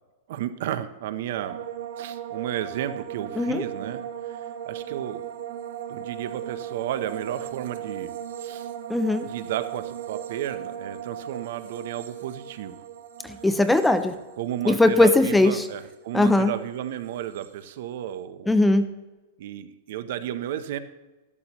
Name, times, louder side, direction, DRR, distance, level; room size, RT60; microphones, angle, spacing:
voice 1, 0.3-1.6 2.0-4.0 4.7-5.2 5.9-8.1 8.4-8.7 9.2-12.7 14.4-18.5 19.4-20.8, right 11 dB, 55° right, 12 dB, 0.7 m, -32 dB
sound 1, 1.3-16.6 16.8-17.5, right 10 dB, 75° right, 1.1 m, -37 dB
voice 2, 8.9-9.3 13.2-14.2 14.7-15.7 16.1-16.5 18.5-18.9, left 2 dB, 5° left, 10 dB, 0.4 m, -20 dB
13.5 x 12.5 x 3.0 m, 1.2 s
supercardioid pair, 165°, 0 cm